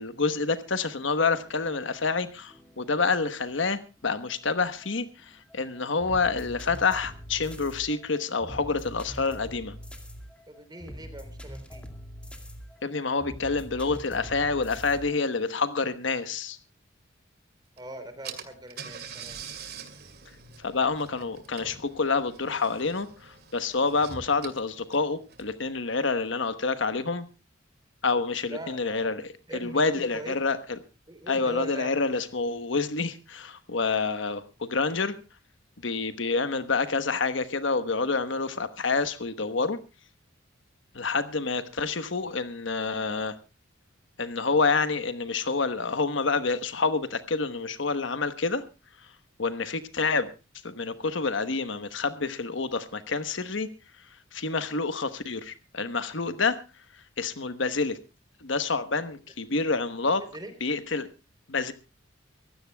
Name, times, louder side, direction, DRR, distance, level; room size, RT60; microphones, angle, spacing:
voice 1, 0.0-9.7 12.8-16.6 20.6-27.2 28.0-29.3 29.6-30.8 31.3-35.1 35.8-39.8 40.9-43.3 44.2-48.6 49.4-50.3 50.6-53.7 54.3-56.6 57.2-58.0 58.4-60.2 60.6-61.1 61.5-61.7, left 4 dB, 65° left, 11 dB, 1.1 m, -28 dB
sound 1, 1.3-15.2, equal, 5° left, 2.3 m, -44 dB
voice 2, 10.5-11.9 17.8-19.4 28.5-29.2 29.5-30.3 31.1-31.9 60.2-60.5, right 1 dB, 20° right, 9 dB, 3.6 m, -42 dB
Car / Engine, 17.8-17.9 18.2-25.7, right 6 dB, 55° right, 2.3 m, -44 dB
24.5 x 15.5 x 2.3 m, 0.30 s
head